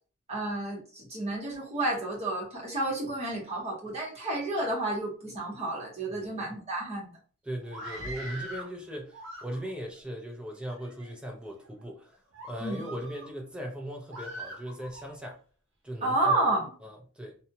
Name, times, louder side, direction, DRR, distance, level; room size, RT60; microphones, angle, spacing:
voice 1, 0.3-7.1 12.6-12.9 16.0-16.7, right 2 dB, 30° right, 1.3 m, -30 dB
voice 2, 7.5-12.2 12.5-15.4 15.8-16.4 16.8-17.4, equal, 5° right, 0.6 m, -38 dB
Screaming, 7.6-8.7 9.1-9.9 10.6-11.1 11.6-11.8 12.3-13.3 14.1-15.1, equal, 60° right, 0.8 m, -42 dB
2.6 x 2.2 x 2.9 m
head